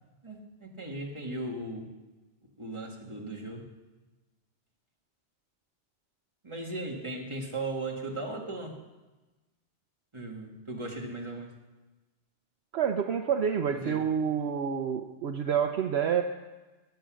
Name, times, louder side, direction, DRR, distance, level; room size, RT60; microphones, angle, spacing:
voice 1, 0.2-1.9 2.6-3.7 6.4-8.8 10.1-11.5 13.8-14.0, right 2 dB, 25° right, 0 dB, 1.9 m, -37 dB
voice 2, 12.7-16.2, right 8 dB, 65° right, 6 dB, 0.9 m, -28 dB
20.0 x 7.9 x 6.3 m, 1.2 s
omnidirectional pair, 1.2 m